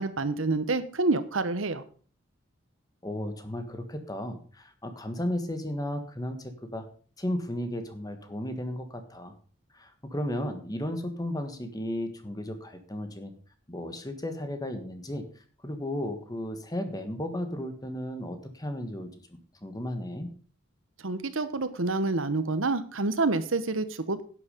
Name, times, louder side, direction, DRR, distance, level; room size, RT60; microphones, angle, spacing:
voice 1, 0.0-1.8 21.0-24.2, right 3 dB, 80° right, 12 dB, 1.1 m, -28 dB
voice 2, 3.0-6.9 7.2-9.3 9.7-13.3 13.7-15.3 15.6-20.3, left 1 dB, 20° left, 8 dB, 1.4 m, -34 dB
11.0 x 8.4 x 5.2 m, 0.42 s
head